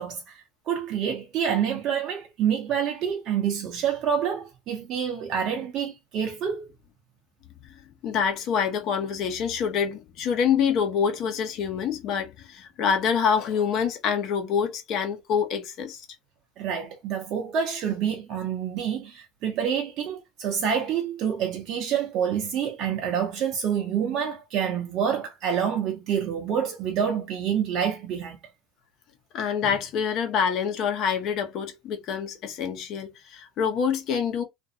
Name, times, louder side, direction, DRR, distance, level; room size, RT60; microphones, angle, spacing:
voice 1, 0.0-6.6 16.6-28.4, right 8 dB, 55° right, 0.6 m, -27 dB
voice 2, 8.0-16.1 29.3-34.4, left 7 dB, 60° left, 0.9 m, -26 dB
2.5 x 2.4 x 2.7 m
hypercardioid pair, 75°, 0 cm